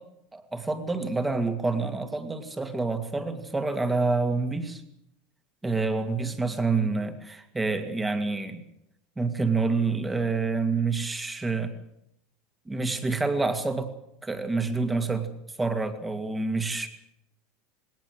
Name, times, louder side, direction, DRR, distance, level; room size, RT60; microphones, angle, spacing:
voice 1, 0.3-4.8 5.6-8.6 9.2-11.7 12.7-13.9 14.2-15.3 15.6-16.9, right 3 dB, 10° right, 8 dB, 2.3 m, -27 dB
19.5 x 18.5 x 8.0 m, 0.79 s
supercardioid pair, 125°, 0 cm